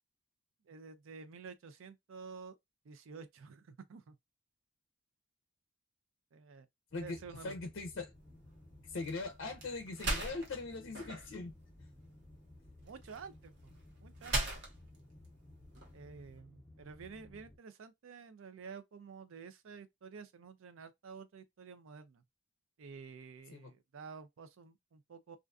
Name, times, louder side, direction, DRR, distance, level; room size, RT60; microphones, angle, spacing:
voice 1, 0.7-2.5 2.8-4.2 6.3-6.7 7.0-7.6 12.8-14.6 15.9-22.2 22.8-25.4, right 5 dB, 85° right, 0.4 m, -51 dB
sound 1, 6.9-17.6, left 1 dB, 10° left, 0.7 m, -58 dB
voice 2, 7.4-8.1 8.9-11.6 23.5-23.7, left 3 dB, 70° left, 0.4 m, -41 dB
sound 2, 8.2-16.4, right 2 dB, 55° right, 0.9 m, -42 dB
2.4 x 2.3 x 2.4 m
head